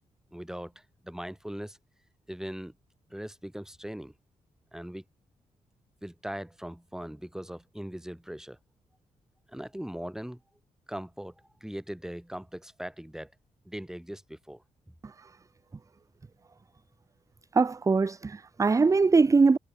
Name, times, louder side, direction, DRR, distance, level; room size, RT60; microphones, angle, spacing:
voice 1, 0.3-1.8 2.3-2.7 3.1-4.1 4.7-5.0 6.0-8.6 9.5-10.4 10.9-11.3 11.6-13.3 13.6-14.6, equal, 5° right, 1.2 m, -40 dB
voice 2, 17.5-19.6, right 4 dB, 20° right, 0.4 m, -22 dB
supercardioid pair, 45°, 16 cm